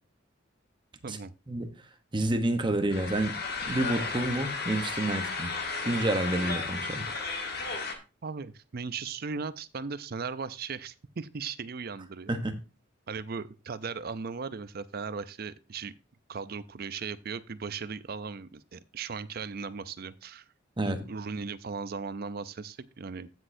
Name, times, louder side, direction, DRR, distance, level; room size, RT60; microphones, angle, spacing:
voice 1, 2.1-3.4 3.6-5.5 5.8-7.2 12.3-12.5 20.8-21.0, right 1 dB, 25° right, 0.9 m, -29 dB
sound 1, 2.9-7.9, left 4 dB, 50° left, 1.4 m, -34 dB
voice 2, 8.2-12.3 13.1-15.9 16.3-20.5 20.9-23.3, right 5 dB, 50° right, 0.5 m, -37 dB
15.5 x 6.3 x 2.7 m
head